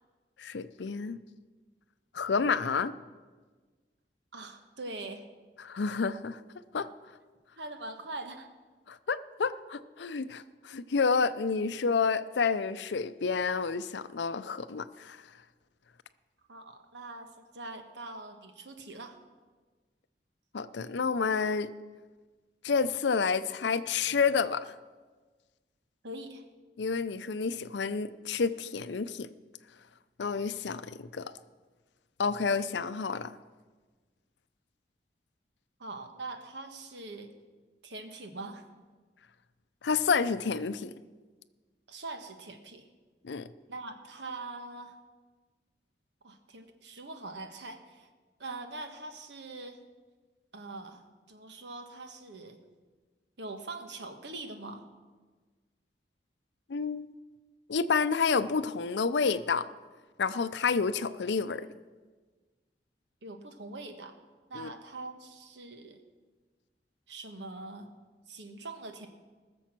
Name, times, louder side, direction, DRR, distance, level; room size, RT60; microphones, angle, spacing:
voice 1, 0.4-1.2 2.1-2.9 5.6-6.4 6.7-6.9 8.9-15.2 20.5-21.7 22.6-24.7 26.8-29.3 30.2-31.3 32.2-33.3 39.8-40.9 43.2-43.5 56.7-57.1 57.7-59.7 60.2-61.7 64.5-64.7, left 5 dB, 85° left, 14 dB, 0.5 m, -29 dB
voice 2, 4.3-5.2 7.6-8.5 16.5-19.2 26.0-26.4 35.8-37.3 37.8-38.6 41.9-42.9 43.7-44.9 46.2-48.1 48.4-49.8 50.5-51.0 51.3-52.6 53.4-54.8 63.2-64.2 64.5-66.0 67.1-67.9 68.3-69.1, right 2 dB, 90° right, 6 dB, 1.4 m, -43 dB
19.0 x 7.0 x 6.0 m, 1.4 s
head